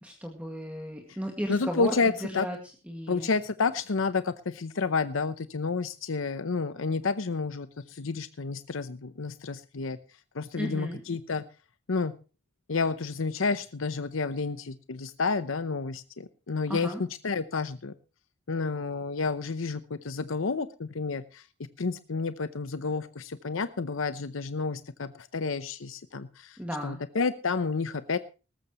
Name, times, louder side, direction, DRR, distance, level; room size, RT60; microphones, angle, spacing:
voice 1, 0.0-2.6 2.9-3.3 10.5-11.0 16.7-17.0 26.6-27.0, equal, 5° right, 2 dB, 1.9 m, -34 dB
voice 2, 1.5-2.5 3.1-10.0 10.3-11.4 11.9-12.1 12.7-17.9 18.5-21.4 21.8-26.6 26.8-28.2, left 4 dB, 85° left, 13 dB, 0.7 m, -30 dB
19.0 x 14.0 x 3.0 m, 0.33 s
head